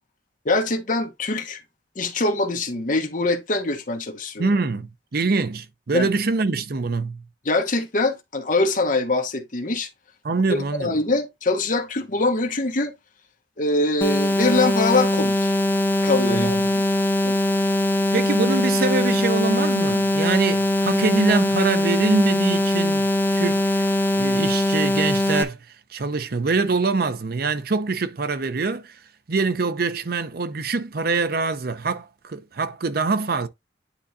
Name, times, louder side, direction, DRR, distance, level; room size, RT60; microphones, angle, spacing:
voice 1, 0.4-1.6 2.0-4.5 5.9-6.1 7.4-9.9 10.8-12.9 13.6-15.5 16.0-16.8 17.2-17.3, left 2 dB, 50° left, 1.1 m, -23 dB
voice 2, 4.4-7.2 10.2-11.0 16.3-16.7 18.1-23.8 24.1-25.6 25.9-29.0 29.3-33.5, right 3 dB, 60° right, 0.7 m, -24 dB
sound 1, 14.0-25.4, left 1 dB, 15° left, 1.1 m, -21 dB
9.9 x 3.8 x 2.7 m
head